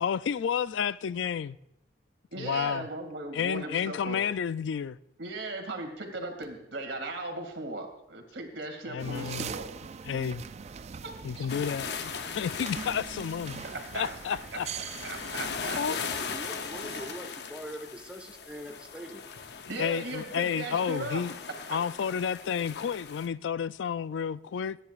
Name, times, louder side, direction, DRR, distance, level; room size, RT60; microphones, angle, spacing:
voice 1, 0.0-1.6 2.4-2.9 3.3-5.0 8.9-9.5 10.0-10.4 11.2-13.6 13.9-14.7 15.1-15.2 15.7-16.0 19.8-21.3 21.7-24.8, left 7 dB, 75° left, 0.4 m, -31 dB
voice 2, 2.3-4.2 5.2-9.7 11.0-11.5 13.7-14.2 15.0-15.8 19.7-21.2, right 2 dB, 85° right, 2.3 m, -37 dB
sound 1, 9.0-17.2, right 6 dB, 35° right, 0.3 m, -42 dB
sound 2, 11.5-23.3, left 6 dB, 60° left, 0.7 m, -39 dB
voice 3, 15.9-19.2, equal, 5° right, 1.3 m, -43 dB
27.5 x 10.0 x 2.5 m
head